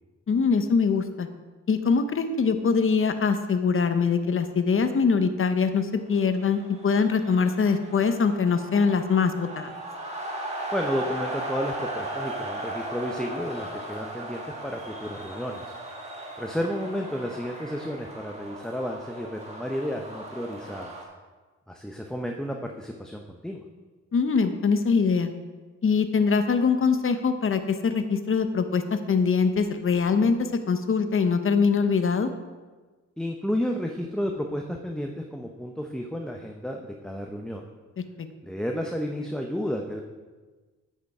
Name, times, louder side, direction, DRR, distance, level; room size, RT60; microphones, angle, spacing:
voice 1, 0.3-1.3 1.7-9.7 24.1-25.3 25.8-28.8 29.1-32.3, left 5 dB, 45° left, 8 dB, 0.8 m, -23 dB
sound 1, 6.2-21.0, right 1 dB, 20° right, 1.8 m, -37 dB
voice 2, 10.7-15.7 16.4-21.0 21.7-23.6 33.2-37.6 38.4-40.0, equal, ahead, 2 dB, 0.7 m, -32 dB
8.7 x 6.6 x 4.8 m, 1.3 s
cardioid pair, 80°, 30 cm